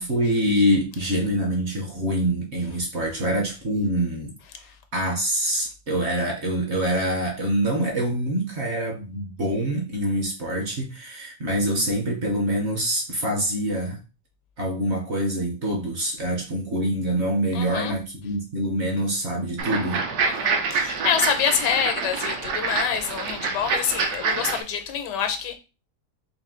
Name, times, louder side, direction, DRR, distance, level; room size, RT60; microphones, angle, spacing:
voice 1, 0.0-4.3 4.9-14.0 14.6-20.0, equal, 50° right, 1.0 m, -25 dB
voice 2, 17.5-18.0 20.2-25.6, left 7 dB, 80° left, 1.3 m, -26 dB
sound 1, 19.6-24.6, right 5 dB, 65° right, 1.2 m, -26 dB
4.1 x 2.6 x 3.7 m
omnidirectional pair, 1.8 m